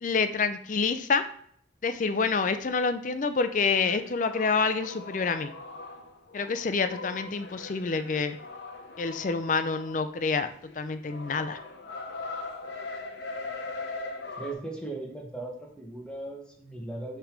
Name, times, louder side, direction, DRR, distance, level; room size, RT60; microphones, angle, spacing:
voice 1, 0.0-1.2 1.8-5.5 6.3-8.4 9.0-10.5 10.8-11.6, left 4 dB, 45° left, 10 dB, 0.4 m, -27 dB
sound 1, 3.8-10.3 10.6-14.5, left 3 dB, 70° left, 0.8 m, -40 dB
voice 2, 14.4-17.2, right 2 dB, 5° left, 0 dB, 1.0 m, -38 dB
6.0 x 3.4 x 5.1 m, 0.64 s
head